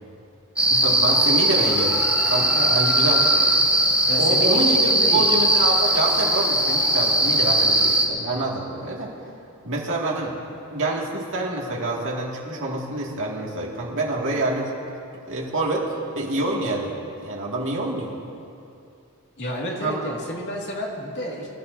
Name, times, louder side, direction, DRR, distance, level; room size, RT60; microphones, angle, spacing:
sound 1, 0.6-8.1, right 1 dB, 5° right, 1.1 m, -19 dB
voice 1, 0.7-2.0 2.3-3.6 4.1-9.1 9.6-10.4 10.7-14.7 15.3-15.9 16.1-17.0 17.2-18.2 19.8-20.0, right 2 dB, 60° right, -3 dB, 2.3 m, -26 dB
voice 2, 4.1-5.5 19.4-21.5, equal, 55° left, -3 dB, 2.3 m, -31 dB
25.0 x 13.5 x 2.8 m, 2.5 s
head